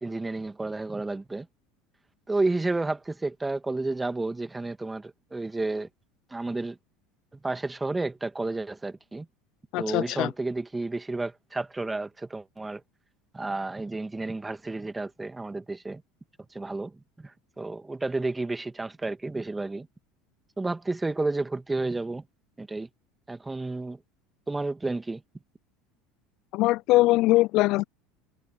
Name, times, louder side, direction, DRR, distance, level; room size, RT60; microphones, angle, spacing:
voice 1, 0.0-1.5 2.3-5.9 6.3-6.8 7.4-9.3 9.8-12.8 13.3-16.0 16.5-19.9 20.6-22.2 22.6-22.9 23.3-24.0 24.5-25.2, right 2 dB, 15° right, 2.3 m, -31 dB
voice 2, 9.7-10.3 26.5-27.8, left 19 dB, 55° left, 0.5 m, -22 dB
hypercardioid pair, 75°, 0 cm